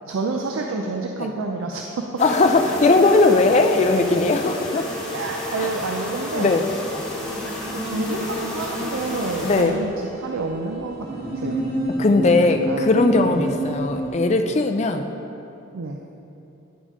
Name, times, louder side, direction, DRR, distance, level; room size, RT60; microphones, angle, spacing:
voice 1, 0.1-2.0 5.1-6.5 7.7-11.1 11.3-11.6 12.4-12.9 13.3-13.4 15.7-16.0, right 3 dB, 90° right, 2 dB, 0.5 m, -29 dB
voice 2, 2.2-4.9 6.4-6.6 9.4-9.8 12.0-15.0, left 3 dB, 35° left, 6 dB, 0.3 m, -18 dB
sound 1, 2.2-9.6, left 1 dB, 5° left, 1.3 m, -31 dB
sound 2, 6.9-14.1, right 1 dB, 50° right, 1.1 m, -30 dB
9.6 x 5.3 x 3.7 m, 2.8 s
head